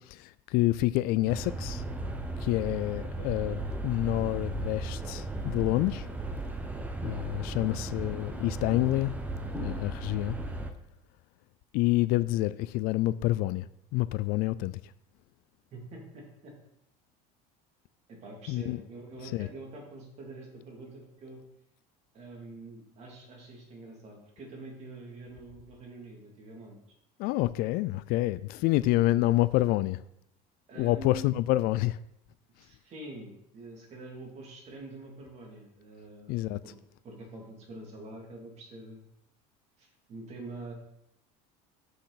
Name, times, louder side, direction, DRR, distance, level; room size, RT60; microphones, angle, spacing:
voice 1, 0.0-1.8 2.4-6.1 7.0-9.2 9.5-10.4 11.7-13.7 13.9-14.8 18.5-18.8 19.3-19.5 27.2-30.0 30.8-32.0 36.3-36.6, left 17 dB, 60° left, 0.4 m, -28 dB
sound 1, 1.3-10.7, right 2 dB, 10° right, 0.8 m, -36 dB
voice 2, 7.4-7.7 15.7-16.5 18.1-21.4 22.1-26.8 30.7-31.4 32.5-36.8 37.0-39.1 39.8-40.7, right 2 dB, 40° right, 2.7 m, -45 dB
7.7 x 6.4 x 4.1 m
cardioid pair, 135°, 18 cm